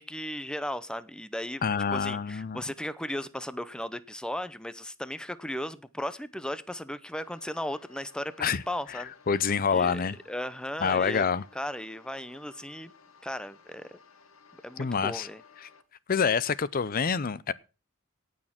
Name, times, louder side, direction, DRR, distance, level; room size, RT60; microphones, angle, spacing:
voice 1, 0.0-1.6 1.9-9.1 9.7-11.3 11.5-12.9 13.2-14.0 14.6-15.4, left 1 dB, 5° left, 0.7 m, -36 dB
voice 2, 1.6-2.6 8.4-8.6 8.9-10.2 10.8-11.4 14.8-15.3 15.6-15.7 16.1-17.5, left 6 dB, 45° left, 0.5 m, -27 dB
sound 1, 7.2-15.8, left 5 dB, 85° left, 1.6 m, -57 dB
18.0 x 6.5 x 5.8 m
head